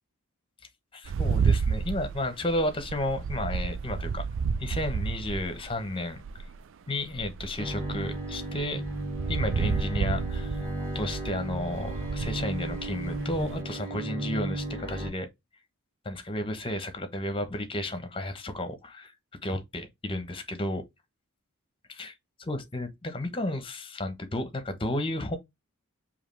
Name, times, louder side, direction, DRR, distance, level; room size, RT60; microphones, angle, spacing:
voice 1, 0.9-4.3 4.6-6.2 6.9-8.8 9.3-10.6 10.9-15.3 16.0-19.1 19.4-20.8 21.9-22.1 22.4-25.4, left 1 dB, 25° left, 1.0 m, -32 dB
sound 1, 1.1-6.6 7.1-13.6, right 5 dB, 60° right, 0.4 m, -31 dB
Bowed string instrument, 7.6-15.1, right 2 dB, 15° right, 1.6 m, -34 dB
4.9 x 2.9 x 3.2 m
head